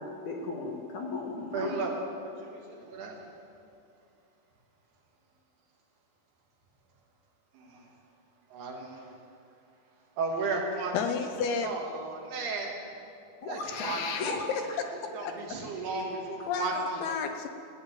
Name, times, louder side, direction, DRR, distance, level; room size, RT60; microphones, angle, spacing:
voice 1, 0.0-1.8 13.4-14.8, left 3 dB, 60° left, 0 dB, 2.5 m, -36 dB
voice 2, 1.5-1.9 2.2-3.1 7.5-7.9 8.5-9.0 10.2-10.9 11.4-12.7 13.5-14.2 15.1-17.0, right 3 dB, 70° right, 0 dB, 3.8 m, -34 dB
voice 3, 10.9-11.7 13.7-14.6 15.2-15.4 16.4-17.5, left 6 dB, 75° left, 6 dB, 2.6 m, -32 dB
17.0 x 9.4 x 8.9 m, 2.5 s
omnidirectional pair, 4.9 m